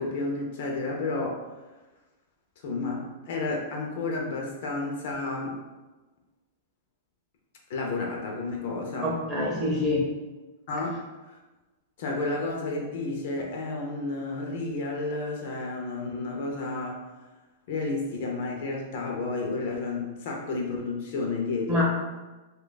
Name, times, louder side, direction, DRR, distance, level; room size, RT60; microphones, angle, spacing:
voice 1, 0.0-1.4 2.6-5.6 7.7-9.1 10.7-11.0 12.0-17.0 17.7-21.8, left 3 dB, 45° left, 0 dB, 0.6 m, -31 dB
voice 2, 9.0-10.0 21.7-21.8, left 1 dB, 15° right, -5 dB, 0.7 m, -25 dB
2.8 x 2.3 x 3.9 m, 1.2 s
supercardioid pair, 175°, 0 cm